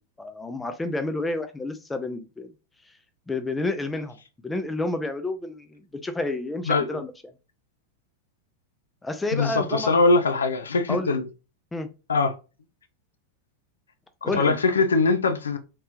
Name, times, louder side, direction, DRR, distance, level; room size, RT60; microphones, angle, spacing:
voice 1, 0.2-2.5 3.3-4.2 4.4-7.1 9.0-9.9 10.9-11.1 11.7-11.9 14.2-14.6, left 2 dB, 10° left, 0.4 m, -30 dB
voice 2, 6.6-7.0 9.3-11.3 12.1-12.3 14.2-15.6, left 3 dB, 70° left, 0.4 m, -22 dB
3.1 x 2.9 x 2.4 m
figure-of-eight pair, 90°, 0 cm